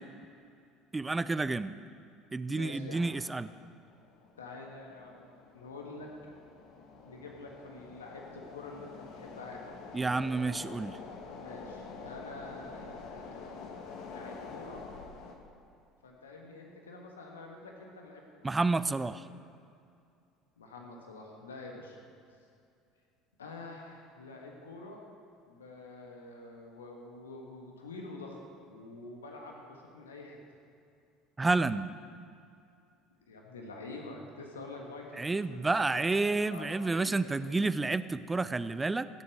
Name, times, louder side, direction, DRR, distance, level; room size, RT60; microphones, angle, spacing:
voice 1, 0.9-1.7 2.3-3.5 9.9-11.0 18.4-19.2 31.4-31.9 35.2-39.1, right 3 dB, 15° right, 14 dB, 0.5 m, -30 dB
voice 2, 2.5-3.1 4.4-5.2 5.5-6.1 7.0-9.8 11.3-13.6 14.1-14.8 16.0-18.5 19.0-19.2 20.6-22.0 23.4-25.0 25.5-28.4 28.6-30.4 33.2-37.3, left 3 dB, 80° left, 0 dB, 1.5 m, -47 dB
sound 1, 3.8-15.3, left 4 dB, 60° left, 1.8 m, -47 dB
16.5 x 8.1 x 6.4 m, 2.5 s
figure-of-eight pair, 65°, 0 cm